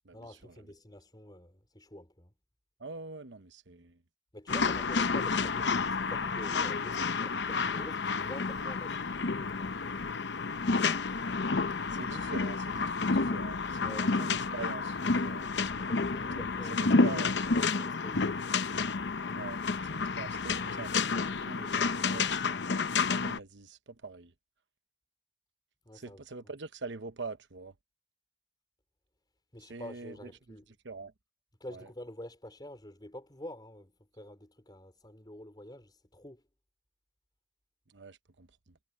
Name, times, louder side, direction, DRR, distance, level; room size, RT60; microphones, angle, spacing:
voice 1, 0.1-2.3 4.3-9.7 13.8-14.1 15.8-18.5 25.8-26.5 29.5-30.7 31.6-36.4, left 1 dB, 25° left, 4.8 m, -47 dB
voice 2, 2.8-4.0 11.9-15.4 16.4-17.4 19.4-22.6 23.1-24.3 25.9-27.7 29.7-30.1 30.8-31.1 31.7-31.9 37.9-38.8, right 3 dB, 80° right, 1.0 m, -44 dB
sound 1, 4.5-23.4, left 4 dB, 70° left, 0.8 m, -30 dB
head